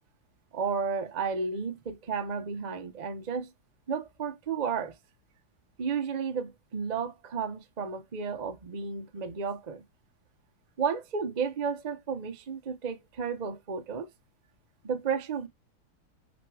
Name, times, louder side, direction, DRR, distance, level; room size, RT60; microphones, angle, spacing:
voice 1, 0.5-3.5 3.9-4.9 5.8-9.8 10.8-14.1 14.8-15.5, right 6 dB, 50° right, 0.5 m, -32 dB
6.2 x 4.1 x 4.9 m
omnidirectional pair, 2.3 m